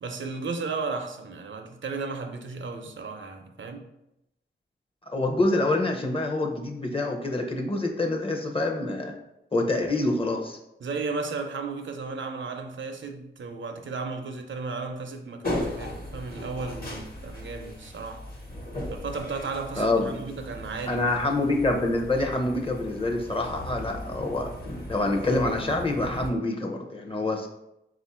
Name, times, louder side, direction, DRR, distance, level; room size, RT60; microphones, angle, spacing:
voice 1, 0.0-3.9 10.8-18.3 18.9-21.1, right 4 dB, 75° right, 0.5 m, -34 dB
voice 2, 5.1-9.1 9.5-10.6 19.8-20.2 20.9-24.5 24.9-27.5, left 2 dB, 30° left, 0.6 m, -26 dB
sound 1, 15.4-26.3, left 1 dB, 50° left, 1.1 m, -37 dB
3.9 x 2.5 x 4.2 m
wide cardioid pair, 90°, 19 cm